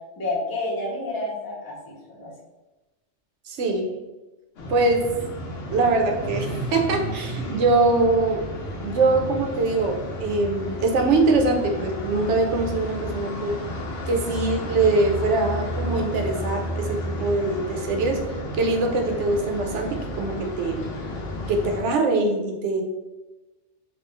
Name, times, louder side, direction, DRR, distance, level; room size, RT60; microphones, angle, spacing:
voice 1, 0.2-2.3, left 2 dB, 20° left, -4 dB, 0.7 m, -29 dB
voice 2, 3.4-4.0 4.7-5.2 5.7-8.5 8.8-13.6 14.1-18.2 18.6-20.8 21.5-22.8, right 3 dB, 75° right, 3 dB, 0.9 m, -23 dB
sound 1, 4.6-21.8, left 1 dB, 60° left, 0.9 m, -32 dB
3.0 x 2.4 x 3.2 m, 1.1 s
omnidirectional pair, 1.2 m